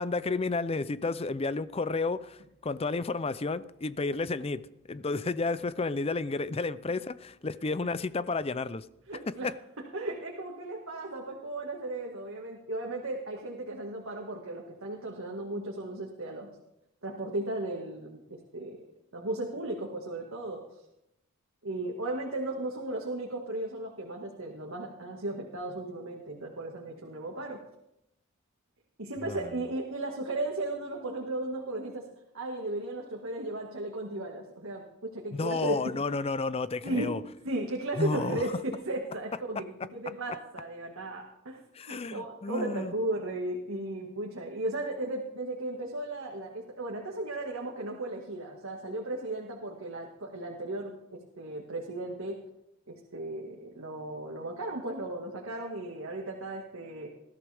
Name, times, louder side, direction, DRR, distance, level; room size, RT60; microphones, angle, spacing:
voice 1, 0.0-4.6 4.9-8.9 9.3-9.4 29.2-29.4 35.3-37.2 38.0-38.5 41.7-42.9, left 3 dB, 30° left, 0.5 m, -31 dB
voice 2, 9.1-9.5 9.9-16.5 17.0-18.8 19.1-20.6 21.6-27.6 29.0-32.1 32.3-35.9 36.8-37.1 37.4-41.6 41.9-52.4 52.9-57.1, right 2 dB, 75° right, 1.9 m, -35 dB
20.0 x 13.5 x 3.5 m
head